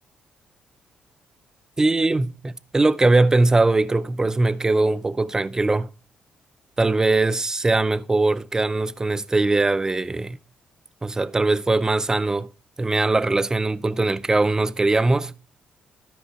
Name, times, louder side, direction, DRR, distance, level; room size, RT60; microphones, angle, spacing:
voice 1, 1.8-5.9 6.8-10.4 11.0-12.5 12.8-15.3, right 2 dB, 20° right, 0.5 m, -21 dB
12.5 x 4.8 x 4.2 m
cardioid pair, 70°, 3 cm